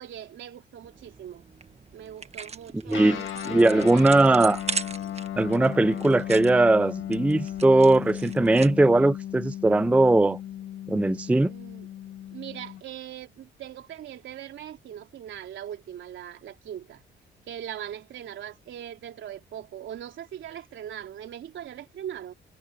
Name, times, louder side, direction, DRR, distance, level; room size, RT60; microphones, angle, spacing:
voice 1, 0.0-1.4 1.9-4.4 11.5-11.9 12.3-17.0 17.5-22.3, right 10 dB, 70° right, 3.7 m, -40 dB
sound 1, 0.8-9.0, right 5 dB, 30° right, 1.5 m, -39 dB
Guitar, 2.9-12.8, left 11 dB, 75° left, 2.1 m, -36 dB
voice 2, 2.9-4.6 5.4-10.4 10.9-11.5, right 2 dB, 5° right, 0.4 m, -20 dB
cardioid pair, 90°, 20 cm